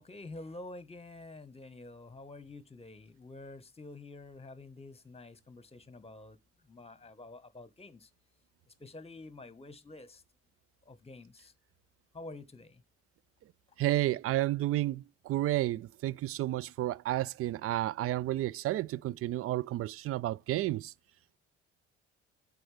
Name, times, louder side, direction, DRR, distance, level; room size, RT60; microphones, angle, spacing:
voice 1, 0.0-6.4 6.7-8.0 8.8-10.2 10.9-11.5 12.1-12.7, left 2 dB, 15° left, 1.2 m, -48 dB
voice 2, 13.8-20.9, right 15 dB, 40° right, 0.4 m, -31 dB
8.1 x 7.7 x 3.3 m
hypercardioid pair, 50°, 35 cm